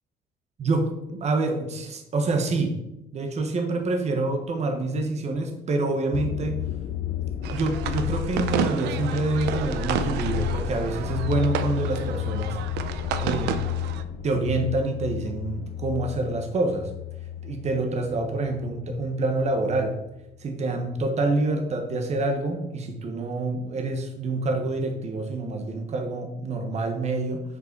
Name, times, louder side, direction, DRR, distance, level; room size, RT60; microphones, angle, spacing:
voice 1, 0.6-2.8 3.1-6.6 7.5-12.6 13.2-13.6 14.2-16.9 17.4-20.0 20.4-27.4, right 2 dB, 40° right, 4 dB, 1.2 m, -27 dB
sound 1, 6.1-19.2 19.5-20.1, left 10 dB, 60° left, 0.5 m, -32 dB
sound 2, 7.4-14.0, right 8 dB, 85° right, 0.6 m, -31 dB
6.1 x 5.4 x 4.6 m, 0.89 s
cardioid pair, 110°, 17 cm